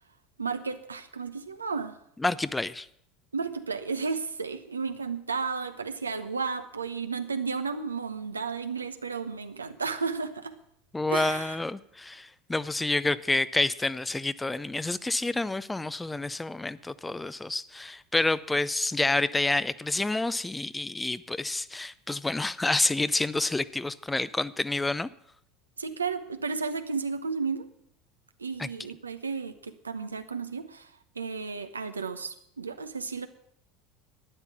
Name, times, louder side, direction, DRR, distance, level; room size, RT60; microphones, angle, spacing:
voice 1, 0.4-2.0 3.3-10.6 11.1-11.6 25.8-27.7 28.4-33.3, right 5 dB, 85° right, 9 dB, 0.9 m, -33 dB
voice 2, 2.2-2.9 10.9-25.1 28.6-28.7, left 2 dB, 10° left, 17 dB, 0.5 m, -28 dB
12.5 x 9.8 x 7.1 m, 0.70 s
figure-of-eight pair, 75°, 0 cm